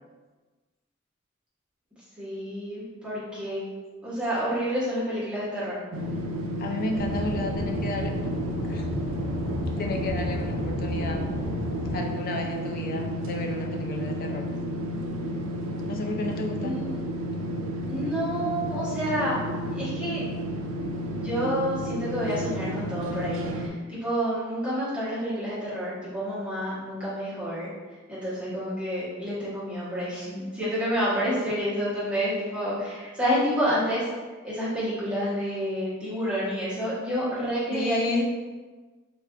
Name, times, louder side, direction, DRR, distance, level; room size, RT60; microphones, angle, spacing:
voice 1, 2.2-3.6 4.0-5.8 16.6-16.9 17.9-19.4 19.7-20.2 21.2-27.7 28.1-34.0 34.4-38.2, equal, 5° right, -11 dB, 0.9 m, -29 dB
sound 1, 5.9-23.7, equal, 70° right, 0.3 m, -32 dB
voice 2, 6.6-8.3 8.6-8.9 9.8-11.2 11.9-14.4 15.9-16.8 31.4-31.5 37.7-38.2, left 2 dB, 45° left, 2 dB, 0.4 m, -32 dB
Aircraft / Engine, 7.0-12.0, left 1 dB, 50° right, 0.8 m, -32 dB
3.6 x 2.3 x 2.4 m, 1.3 s
head